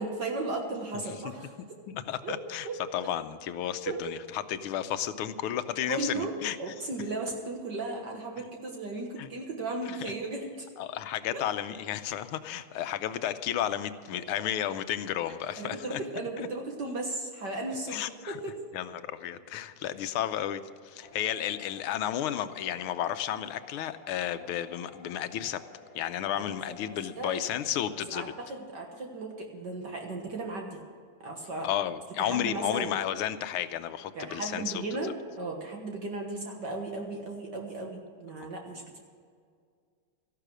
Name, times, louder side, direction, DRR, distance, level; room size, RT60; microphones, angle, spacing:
voice 1, 0.0-1.5 2.2-2.4 2.6-2.8 3.9-4.0 5.9-6.3 6.6-10.7 11.3-11.5 14.3-14.4 15.3-18.0 18.3-18.6 26.3-26.4 27.2-27.4 28.1-30.8 31.2-31.7 32.2-32.9 34.2-39.0, right 2 dB, 55° right, 1 dB, 2.0 m, -35 dB
voice 2, 1.9-2.7 2.9-6.6 9.2-9.3 9.9-10.1 10.8-16.0 16.4-16.5 17.9-18.4 18.7-25.6 26.0-28.3 31.6-34.8 38.4-38.5, left 11 dB, 85° left, 11 dB, 1.6 m, -33 dB
sound 1, 21.0-27.7, left 5 dB, 20° left, 1.8 m, -52 dB
14.0 x 11.5 x 6.2 m, 2.1 s
omnidirectional pair, 2.3 m